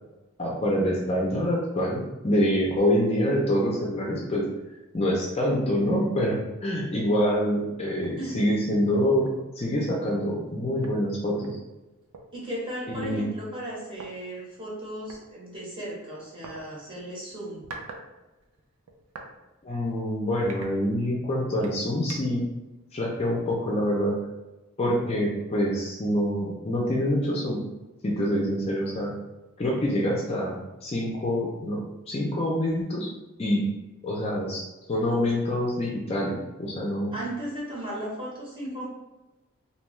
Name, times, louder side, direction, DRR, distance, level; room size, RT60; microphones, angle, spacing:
voice 1, 0.4-4.4 4.9-9.3 9.6-11.6 12.9-13.2 19.6-22.4 22.9-24.2 24.8-27.6 28.0-29.1 29.6-33.1 33.4-33.6 34.0-37.1, equal, 30° left, -3 dB, 0.4 m, -26 dB
sound 1, 8.0-8.2 8.7-8.8 9.2-9.5 10.5-10.6 10.8-12.2 13.0-13.2 13.9-14.1 15.1-15.3 16.4-16.6 17.4-18.0 18.4-19.3 19.8-19.9 20.4-21.2 21.6-22.4, right 3 dB, 85° right, 0.4 m, -44 dB
voice 2, 12.3-17.6 37.1-38.9, right 1 dB, 25° right, -6 dB, 0.8 m, -36 dB
2.6 x 2.2 x 3.0 m, 1.0 s
head